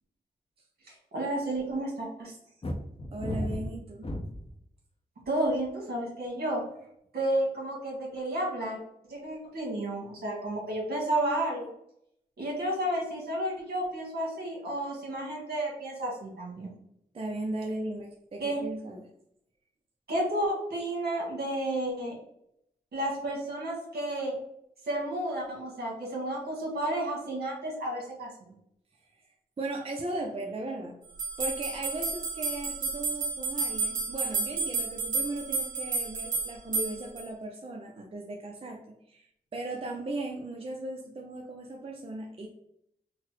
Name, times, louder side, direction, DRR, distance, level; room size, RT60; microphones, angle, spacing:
voice 1, 1.1-2.3 5.3-6.6 7.1-8.8 9.1-11.7 12.4-16.7 18.4-18.6 20.1-22.2 22.9-24.3 24.8-28.5, right 1 dB, 70° right, -3 dB, 1.4 m, -31 dB
sound 1, 2.6-4.6 5.2-5.7, left 1 dB, 35° left, 0.6 m, -34 dB
voice 2, 3.1-4.1 17.1-19.1 29.6-31.0 31.4-38.8 39.1-42.5, right 2 dB, 35° right, 1 dB, 0.5 m, -37 dB
sound 2, 31.2-37.2, right 4 dB, 55° right, 1.3 m, -31 dB
3.9 x 2.1 x 3.0 m, 0.75 s
cardioid pair, 55°, 16 cm